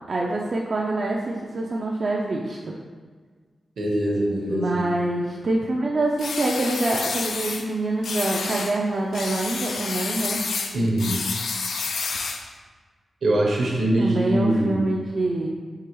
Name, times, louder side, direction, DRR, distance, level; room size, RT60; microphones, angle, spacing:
voice 1, 0.1-2.6 4.5-10.4 14.0-15.5, right 2 dB, 55° right, -3 dB, 0.4 m, -25 dB
voice 2, 3.8-4.8 10.7-11.2 13.2-14.9, right 1 dB, 75° right, -2 dB, 0.9 m, -22 dB
sound 1, 6.2-7.7 8.0-8.8 9.1-12.5, left 4 dB, 80° left, 0.3 m, -29 dB
4.8 x 2.9 x 3.0 m, 1.5 s
cardioid pair, 75°, 0 cm